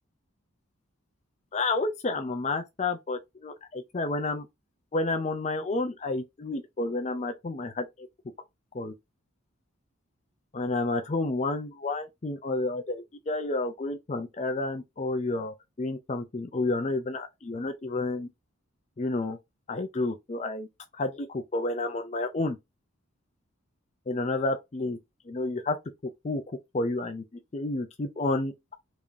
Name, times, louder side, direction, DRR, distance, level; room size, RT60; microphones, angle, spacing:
voice 1, 1.5-4.5 4.9-8.1 8.7-8.9 10.5-18.3 19.0-19.4 19.7-20.7 20.9-22.6 24.1-25.0 25.3-25.8 26.0-26.4 26.7-27.2 27.5-28.5, left 2 dB, 30° left, 0.4 m, -30 dB
3.5 x 3.3 x 2.6 m
head